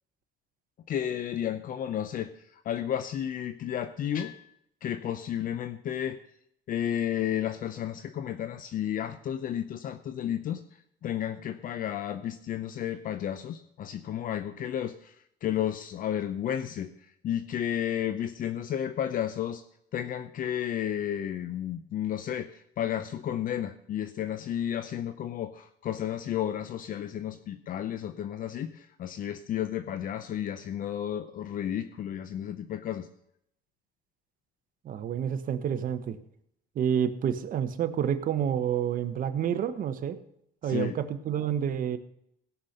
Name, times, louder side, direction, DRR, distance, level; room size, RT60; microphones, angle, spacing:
voice 1, 0.9-4.5 4.8-6.2 6.7-10.6 11.0-15.2 15.4-16.9 17.2-19.6 19.9-33.1 40.6-41.0, left 10 dB, 55° left, 11 dB, 0.7 m, -32 dB
voice 2, 34.8-36.2 36.7-40.2 40.6-42.0, right 9 dB, 55° right, 10 dB, 1.1 m, -29 dB
17.0 x 5.9 x 6.7 m, 0.73 s
cardioid pair, 110°, 17 cm